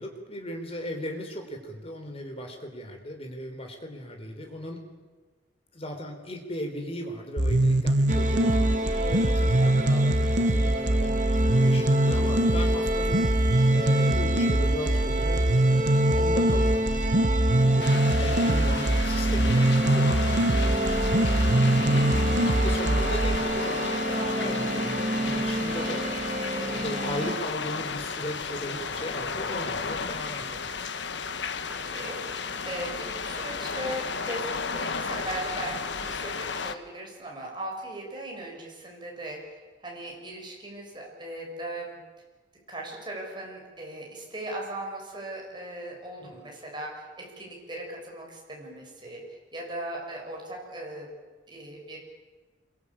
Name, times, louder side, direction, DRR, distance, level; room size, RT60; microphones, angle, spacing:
voice 1, 0.0-4.8 5.7-13.2 13.7-17.0 17.6-22.1 22.4-26.1 26.5-31.0 46.2-46.3, equal, 30° left, 3 dB, 4.3 m, -37 dB
sound 1, 7.4-23.4, right 1 dB, 65° right, 1.3 m, -23 dB
sound 2, 8.1-27.3, right 1 dB, 40° right, 2.4 m, -29 dB
voice 2, 17.7-18.0 31.7-42.0 42.7-51.1 51.5-52.0, right 1 dB, 25° right, -1 dB, 7.0 m, -38 dB
sound 3, 17.8-36.7, left 5 dB, 65° left, 1.5 m, -34 dB
27.0 x 22.5 x 8.8 m, 1.3 s
head